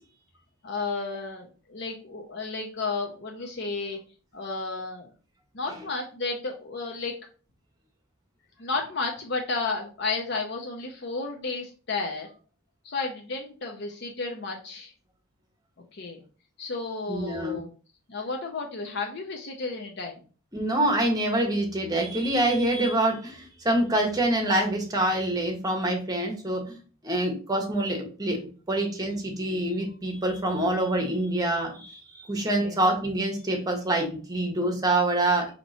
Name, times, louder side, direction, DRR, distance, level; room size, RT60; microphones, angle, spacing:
voice 1, 0.6-4.0 4.3-5.1 5.5-7.1 8.6-12.3 12.8-14.9 15.9-16.2 16.6-17.7 18.1-20.2 32.3-32.8, left 3 dB, 50° left, 2 dB, 0.7 m, -32 dB
voice 2, 17.1-17.6 20.5-26.6 27.0-28.4 28.7-32.0 32.2-35.5, right 1 dB, 15° right, 1 dB, 1.0 m, -26 dB
4.5 x 2.9 x 4.1 m, 0.38 s
head